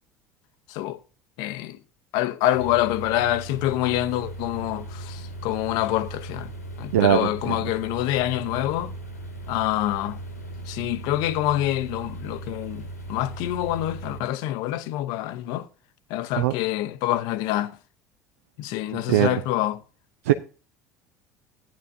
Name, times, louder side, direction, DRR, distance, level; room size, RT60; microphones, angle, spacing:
voice 1, 0.7-1.0 1.4-1.8 2.1-6.5 6.8-8.9 9.5-10.2 10.7-15.7 16.1-17.8 18.6-19.8, left 14 dB, 55° left, 0.7 m, -26 dB
sound 1, 2.5-14.2, right 2 dB, 85° left, 1.6 m, -38 dB
voice 2, 6.9-7.6 16.4-16.5 18.9-19.4 20.2-20.3, right 12 dB, 65° right, 0.4 m, -21 dB
14.5 x 9.4 x 2.6 m
figure-of-eight pair, 65°, 8 cm